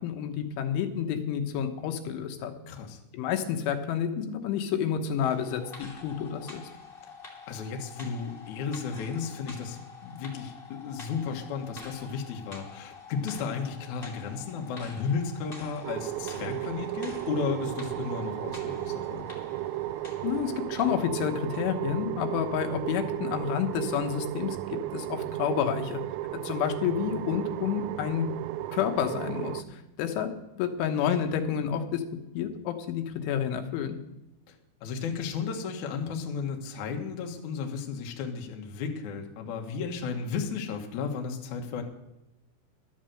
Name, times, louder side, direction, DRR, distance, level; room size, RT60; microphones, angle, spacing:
voice 1, 0.0-2.5 3.1-6.6 20.2-24.6 24.9-26.0 26.3-28.3 28.7-32.0 32.4-34.0, left 8 dB, 90° left, 5 dB, 3.6 m, -29 dB
voice 2, 2.7-3.0 7.5-19.2 34.5-34.6 34.8-41.8, left 5 dB, 65° left, 3 dB, 1.9 m, -34 dB
sound 1, 5.2-21.1 21.5-21.6, left 4 dB, 20° left, 1.5 m, -47 dB
sound 2, 15.8-29.6, right 15 dB, 85° right, 2.8 m, -34 dB
12.5 x 7.4 x 7.7 m, 0.93 s
omnidirectional pair, 5.4 m